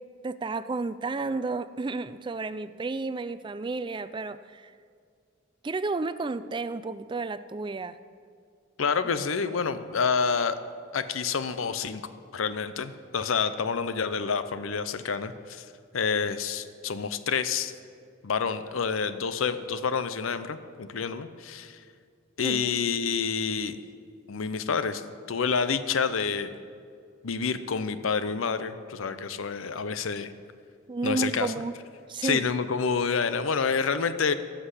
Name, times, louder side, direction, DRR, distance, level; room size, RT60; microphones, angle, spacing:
voice 1, 0.2-4.7 5.6-8.0 22.4-22.8 30.9-31.8 32.1-32.4, right 3 dB, 25° right, 14 dB, 0.4 m, -32 dB
voice 2, 8.8-10.6 10.9-12.0 12.3-15.6 15.9-17.7 18.2-21.8 22.4-23.8 24.3-25.0 25.3-26.5 27.2-30.3 31.0-31.5 32.2-34.3, left 5 dB, 80° left, 12 dB, 0.6 m, -28 dB
15.0 x 6.0 x 8.1 m, 2.2 s
head